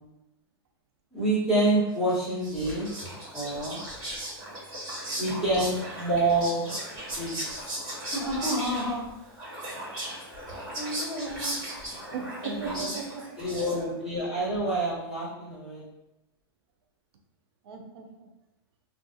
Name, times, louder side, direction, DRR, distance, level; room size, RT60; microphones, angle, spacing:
voice 1, 1.1-2.9 3.3-3.8 5.2-6.6 7.0-9.0 10.7-11.6 12.4-12.6 13.4-15.8, right 1 dB, 5° right, -11 dB, 1.1 m, -28 dB
Whispering, 2.1-14.1, right 1 dB, 35° right, 1.4 m, -37 dB
voice 2, 11.9-13.4 17.6-18.3, right 5 dB, 80° right, 3 dB, 0.4 m, -38 dB
2.3 x 2.3 x 2.6 m, 0.93 s
supercardioid pair, 145°, 13 cm